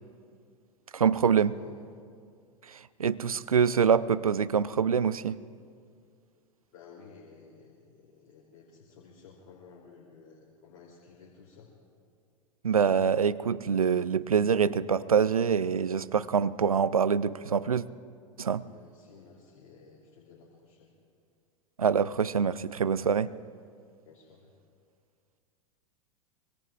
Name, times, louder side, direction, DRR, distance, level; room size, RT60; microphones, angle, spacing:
voice 1, 0.9-1.5 2.7-5.4 12.6-17.8 18.4-18.6 21.8-23.3, right 7 dB, 90° right, 0.5 m, -25 dB
voice 2, 6.7-11.7 18.6-20.9 24.0-24.5, left 5 dB, 55° left, 3.0 m, -53 dB
24.5 x 24.0 x 2.4 m
figure-of-eight pair, 95°, 18 cm